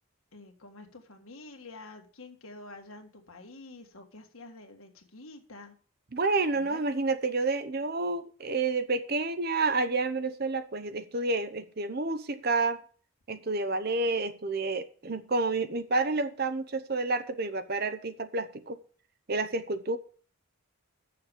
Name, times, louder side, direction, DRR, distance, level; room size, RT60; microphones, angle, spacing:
voice 1, 0.3-5.7 6.5-6.8, left 2 dB, 75° left, 4 dB, 1.7 m, -48 dB
voice 2, 6.1-12.8 13.3-18.8 19.3-20.0, right 3 dB, 45° right, 11 dB, 0.8 m, -29 dB
6.8 x 6.7 x 7.2 m, 0.41 s
head